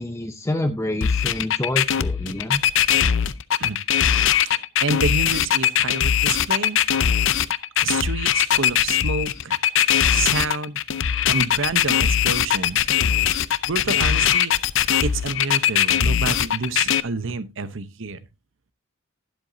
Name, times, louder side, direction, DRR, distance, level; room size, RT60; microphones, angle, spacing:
voice 1, 0.0-2.6, left 1 dB, 15° left, 0.6 m, -27 dB
sound 1, 1.0-17.0, left 9 dB, 65° left, 0.6 m, -20 dB
voice 2, 4.4-6.8 7.8-9.6 10.1-10.8 11.3-12.9 13.7-14.5 15.0-18.2, right 4 dB, 65° right, 0.9 m, -28 dB
12.0 x 10.5 x 2.7 m
head